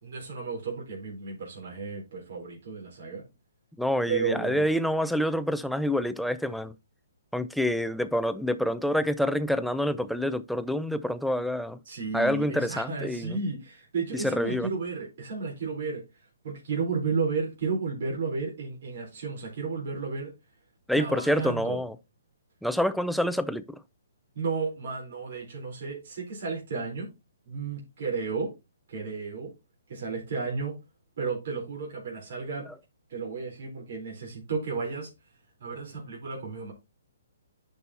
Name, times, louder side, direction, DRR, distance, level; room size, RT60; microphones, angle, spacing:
voice 1, 0.0-3.2 4.1-4.7 11.9-16.0 16.4-20.3 20.9-21.8 24.3-27.1 27.5-28.5 28.9-29.5 29.9-30.7 31.2-32.7 33.1-35.1 35.6-36.7, right 4 dB, 60° right, 3.9 m, -33 dB
voice 2, 3.8-6.7 7.3-11.8 12.1-13.4 14.1-14.7 20.9-22.0 22.6-23.8, equal, ahead, 0.5 m, -27 dB
10.5 x 5.4 x 2.8 m
hypercardioid pair, 150°, 0 cm